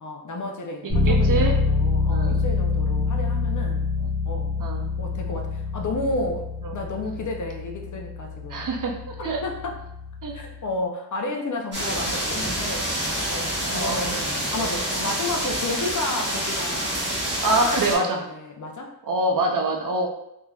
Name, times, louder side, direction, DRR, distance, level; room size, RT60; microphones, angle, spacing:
voice 1, 0.0-3.8 4.2-4.5 5.0-8.7 9.2-9.8 10.3-12.9 13.3-16.9 17.4-18.9, left 2 dB, 50° left, 2 dB, 0.5 m, -32 dB
Bass guitar, 0.9-10.6, left 4 dB, 30° left, 1.2 m, -26 dB
voice 2, 1.0-1.5 2.1-2.4 3.0-3.1 4.0-4.1 4.6-4.9 6.6-6.7 8.5-9.4 10.2-10.4 13.7-14.1 17.4-18.2 19.1-20.1, right 2 dB, 55° right, 1 dB, 0.5 m, -25 dB
sound 1, 11.7-18.0, equal, 25° right, 1.2 m, -27 dB
3.2 x 2.6 x 2.2 m, 0.81 s
wide cardioid pair, 100°, 40 cm